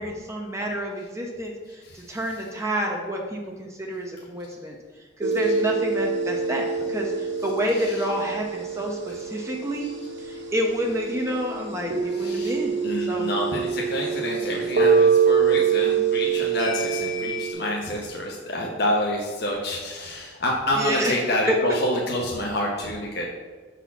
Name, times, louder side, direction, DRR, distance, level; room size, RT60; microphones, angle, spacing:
voice 1, 0.0-4.8 5.2-9.9 10.2-12.7 13.1-13.3 20.7-21.1 21.5-21.8, equal, 15° right, 0 dB, 0.7 m, -28 dB
voice 2, 1.8-2.5 5.4-5.6 7.4-8.1 9.1-9.2 9.8-9.9 10.9-11.0 12.1-23.3, left 1 dB, 60° left, -1 dB, 0.8 m, -28 dB
sound 1, 5.2-17.5, right 6 dB, 70° right, 1.3 m, -25 dB
6.0 x 4.2 x 5.7 m, 1.4 s
head